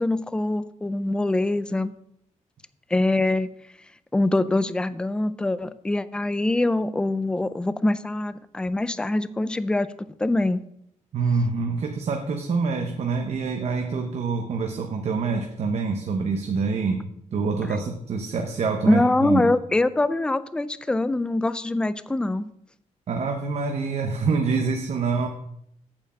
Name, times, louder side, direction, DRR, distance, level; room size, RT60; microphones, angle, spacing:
voice 1, 0.0-1.9 2.9-3.5 4.1-10.6 18.8-22.5, left 2 dB, 5° left, 14 dB, 0.3 m, -24 dB
voice 2, 11.1-19.5 23.1-25.3, right 4 dB, 55° right, 4 dB, 0.9 m, -26 dB
8.7 x 4.6 x 7.4 m, 0.74 s
wide cardioid pair, 170°, 13 cm